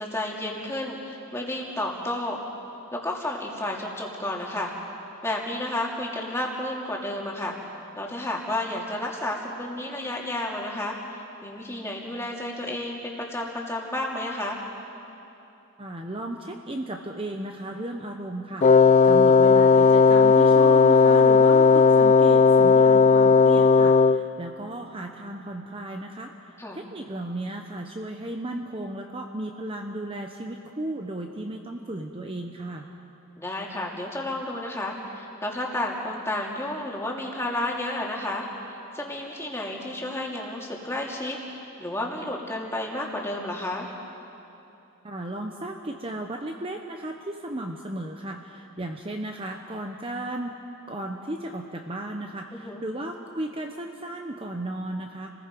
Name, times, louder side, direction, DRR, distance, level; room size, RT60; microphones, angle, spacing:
voice 1, 0.0-2.4 2.9-4.7 5.2-7.6 8.0-11.0 11.4-14.6 26.6-26.8 33.4-43.9 52.5-52.8, left 1 dB, 10° left, -2 dB, 2.5 m, -31 dB
voice 2, 15.8-32.9 45.0-50.6 50.9-55.3, right 1 dB, 25° right, 3 dB, 0.9 m, -35 dB
Wind instrument woodwind instrument, 18.6-24.3, left 4 dB, 35° left, 0.4 m, -16 dB
29.5 x 19.5 x 5.3 m, 2.9 s
head